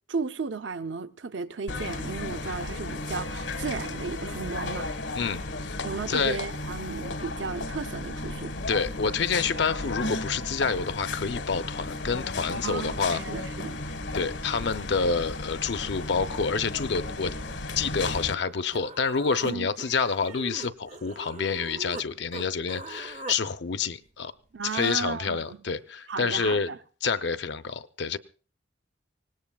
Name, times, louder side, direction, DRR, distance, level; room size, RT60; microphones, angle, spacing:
voice 1, 0.1-4.9 5.8-8.5 12.6-13.8 19.4-19.7 24.5-25.6 26.1-26.8, right 4 dB, 70° right, 0.7 m, -34 dB
sound 1, 1.7-18.3, left 2 dB, 85° left, 1.4 m, -34 dB
voice 2, 5.1-5.7 6.1-6.4 8.7-13.2 14.1-17.3 17.8-24.3 24.7-26.7 27.0-28.2, left 5 dB, 60° left, 0.6 m, -28 dB
Human voice, 18.4-18.5 18.7-22.1 22.3-23.4, right 3 dB, 40° right, 0.6 m, -41 dB
24.5 x 19.0 x 2.3 m
head